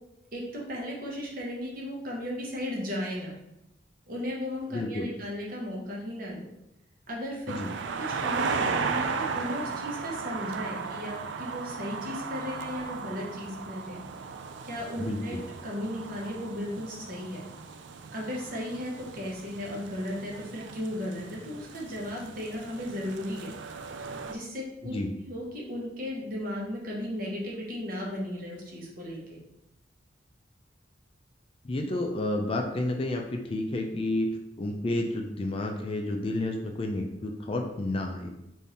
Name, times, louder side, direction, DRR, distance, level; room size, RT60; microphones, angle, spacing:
voice 1, 0.3-3.3 4.1-6.5 7.1-7.5 8.0-14.0 14.6-17.4 18.1-23.5 24.3-24.9 25.3-29.4, left 1 dB, 50° right, -3 dB, 1.0 m, -35 dB
voice 2, 4.7-5.1 7.5-7.7 15.0-15.4 24.8-25.1 31.6-34.3 34.6-38.3, left 1 dB, 30° left, 2 dB, 0.4 m, -30 dB
sound 1, 7.5-24.3, right 5 dB, 70° right, 0.4 m, -36 dB
3.6 x 2.6 x 4.1 m, 0.89 s
head